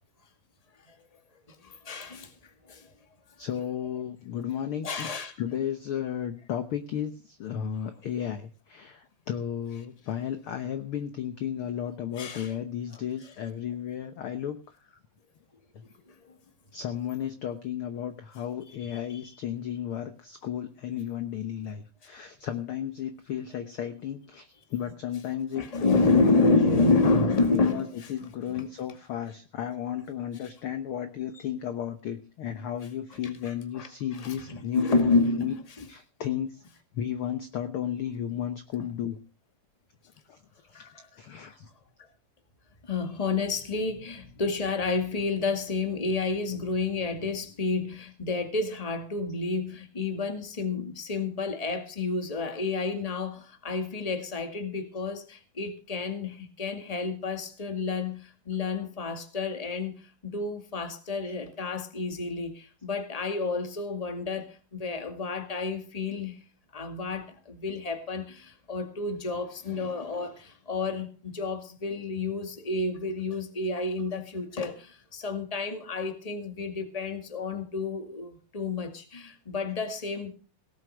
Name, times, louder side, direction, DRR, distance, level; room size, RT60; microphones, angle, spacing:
voice 1, 1.5-2.3 2.7-2.9 4.8-5.3 9.7-9.8 12.1-12.6 12.9-13.3 16.2-16.3 18.7-19.3 24.8-25.2 25.5-28.7 31.3-31.4 33.1-35.9 38.8-38.9 40.7-41.1 42.9-60.0 60.2-66.4 66.7-80.4, left 3 dB, 15° left, 1.5 m, -30 dB
voice 2, 3.4-5.1 5.4-14.6 16.7-26.3 26.6-26.8 27.7-35.5 35.9-36.6 36.9-39.2 40.3-40.4 40.7-40.8 41.2-41.7, left 9 dB, 65° left, 1.4 m, -34 dB
18.0 x 7.9 x 6.3 m
omnidirectional pair, 3.6 m